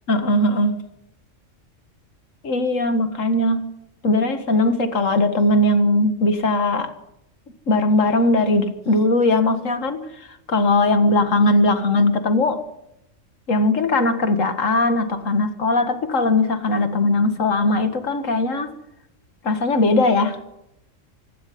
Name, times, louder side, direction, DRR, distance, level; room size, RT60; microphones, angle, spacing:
voice 1, 0.1-0.7 2.4-3.6 4.0-6.9 7.7-12.6 13.5-18.7 19.4-20.4, left 2 dB, 75° left, 2.2 m, -19 dB
25.5 x 12.5 x 9.4 m
omnidirectional pair, 1.3 m